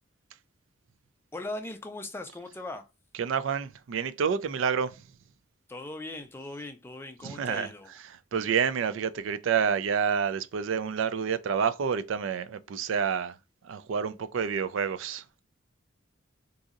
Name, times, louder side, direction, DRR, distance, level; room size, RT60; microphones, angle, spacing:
voice 1, 1.3-2.9 5.7-7.9, left 2 dB, 10° left, 0.4 m, -39 dB
voice 2, 3.2-5.1 7.2-7.7 8.1-13.4 13.6-15.4, right 6 dB, 70° right, 0.3 m, -29 dB
4.0 x 2.6 x 2.4 m
head